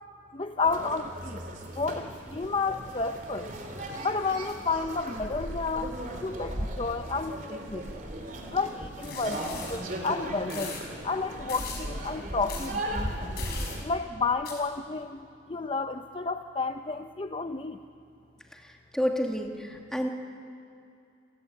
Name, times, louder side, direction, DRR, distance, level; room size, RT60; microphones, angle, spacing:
voice 1, 0.3-1.4 1.8-3.5 4.0-8.0 8.5-10.8 11.0-13.3 13.8-17.8, left 4 dB, 30° left, 7 dB, 0.6 m, -31 dB
sound 1, 0.6-13.8, right 1 dB, 45° right, 3.4 m, -37 dB
sound 2, 9.0-9.8 10.5-10.8 11.5-11.8 12.5-12.7 13.4-13.8 14.5-14.6, left 6 dB, 55° left, 5.9 m, -39 dB
voice 2, 18.6-20.1, equal, 5° left, 1 dB, 2.3 m, -30 dB
29.5 x 16.0 x 9.5 m, 2.6 s
head